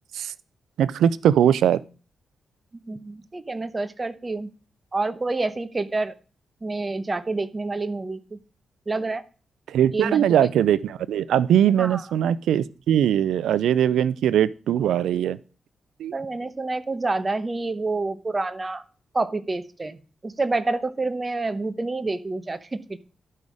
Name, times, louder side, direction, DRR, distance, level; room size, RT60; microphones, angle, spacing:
voice 1, 0.8-1.8 9.7-15.4 16.0-16.1, right 10 dB, 90° right, 19 dB, 0.4 m, -21 dB
voice 2, 2.8-4.5 4.9-6.1 6.6-8.4 8.9-9.2 9.9-10.5 11.8-12.0 16.1-18.8 19.1-23.0, right 3 dB, 30° right, 11 dB, 1.0 m, -28 dB
12.0 x 5.5 x 4.9 m, 0.36 s
cardioid pair, 65°, 0 cm